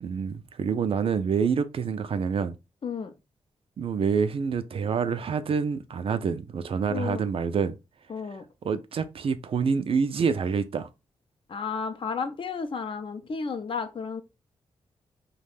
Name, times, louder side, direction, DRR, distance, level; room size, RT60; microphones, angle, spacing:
voice 1, 0.0-2.5 3.8-7.8 8.6-10.9, right 6 dB, 55° right, 0.4 m, -27 dB
voice 2, 2.8-3.1 6.9-7.3 8.1-8.4 11.5-14.2, left 5 dB, 50° left, 0.5 m, -32 dB
2.4 x 2.1 x 3.3 m
cardioid pair, 50°, 11 cm